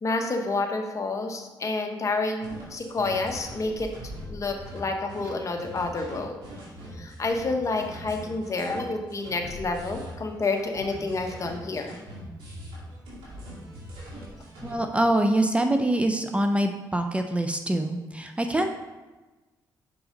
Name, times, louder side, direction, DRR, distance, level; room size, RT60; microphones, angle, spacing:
voice 1, 0.0-3.9 4.3-6.4 6.9-12.0, left 3 dB, 40° left, 4 dB, 1.0 m, -29 dB
sound 1, 2.4-14.7, equal, 90° right, 2.4 m, -41 dB
voice 2, 14.6-18.7, right 1 dB, 15° right, 5 dB, 0.5 m, -24 dB
6.3 x 5.9 x 3.8 m, 1.2 s
cardioid pair, 80°, 8 cm